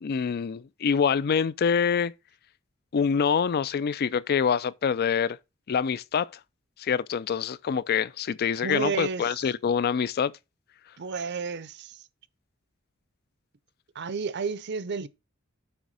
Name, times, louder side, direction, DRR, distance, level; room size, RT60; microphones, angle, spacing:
voice 1, 0.0-2.1 2.9-5.4 5.7-6.3 6.8-10.3, left 6 dB, 50° left, 0.4 m, -25 dB
voice 2, 8.6-9.4 11.0-12.1 13.9-15.1, right 5 dB, 55° right, 0.6 m, -31 dB
8.0 x 3.5 x 6.3 m
head